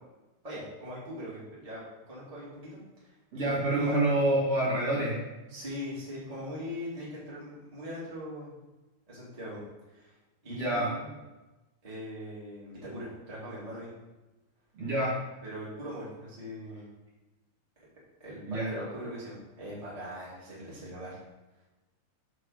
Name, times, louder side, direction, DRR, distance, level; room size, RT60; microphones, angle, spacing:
voice 1, 0.4-3.5 3.7-4.0 5.5-8.5 9.1-9.6 9.9-10.1 10.4-11.1 11.8-13.9 15.4-16.9 17.7-17.8 18.2-21.2, equal, 20° right, -8 dB, 0.9 m, -41 dB
voice 2, 3.3-5.2 10.5-10.9 14.7-15.1 18.5-18.7, right 1 dB, 40° right, -8 dB, 2.5 m, -27 dB
6.6 x 4.7 x 6.5 m, 1.1 s
omnidirectional pair, 5.5 m